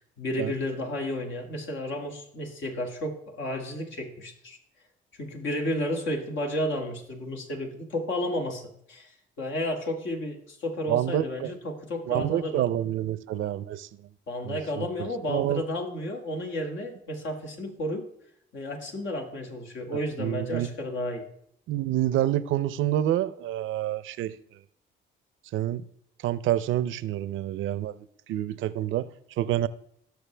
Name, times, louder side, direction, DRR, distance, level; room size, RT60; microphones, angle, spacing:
voice 1, 0.0-4.6 5.2-8.6 8.9-9.1 9.4-12.6 14.3-18.0 18.5-21.3, left 1 dB, 70° left, 2.3 m, -32 dB
voice 2, 10.9-11.5 12.1-14.1 14.4-15.6 19.9-20.7 21.7-24.4 25.5-25.9 26.2-29.7, right 12 dB, 80° right, 0.6 m, -28 dB
17.5 x 6.6 x 3.4 m
cardioid pair, 90°, 20 cm